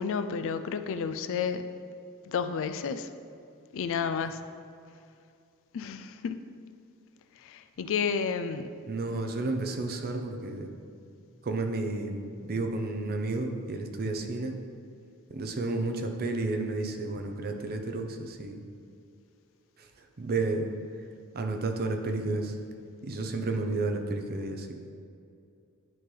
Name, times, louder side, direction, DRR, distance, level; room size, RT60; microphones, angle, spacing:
voice 1, 0.0-1.6 2.3-3.1 3.7-4.4 5.7-6.4 7.4-8.7, left 6 dB, 60° left, 10 dB, 0.3 m, -31 dB
voice 2, 8.9-10.7 11.4-14.6 15.3-18.6 19.8-20.7 21.3-22.6 23.0-24.8, right 2 dB, 45° right, 5 dB, 0.6 m, -31 dB
10.5 x 3.8 x 3.2 m, 2.5 s
head